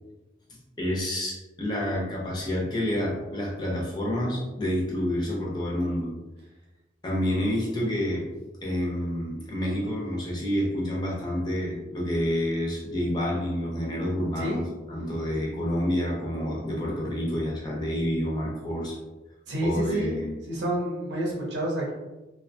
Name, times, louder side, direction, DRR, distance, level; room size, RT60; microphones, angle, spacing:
voice 1, 0.8-6.1 7.0-8.3 8.6-14.6 14.9-19.0 19.6-20.3, equal, 25° left, -4 dB, 0.5 m, -28 dB
voice 2, 14.4-14.7 19.5-20.2 20.5-21.9, right 1 dB, 80° right, -4 dB, 0.6 m, -29 dB
2.6 x 2.2 x 2.5 m, 1.1 s
head